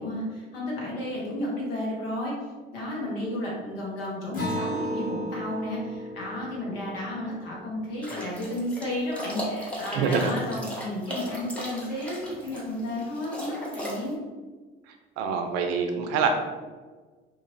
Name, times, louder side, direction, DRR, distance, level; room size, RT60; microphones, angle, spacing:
voice 1, 0.0-2.3 2.7-14.2, left 1 dB, 85° left, -3 dB, 0.9 m, -32 dB
Acoustic guitar, 4.3-9.2, equal, 50° left, 1.3 m, -36 dB
sound 1, 8.0-14.1, equal, 5° left, 0.8 m, -37 dB
voice 2, 10.0-10.3 15.2-16.3, right 6 dB, 60° right, 5 dB, 0.5 m, -25 dB
2.9 x 2.4 x 2.6 m, 1.4 s
hypercardioid pair, 60°, 29 cm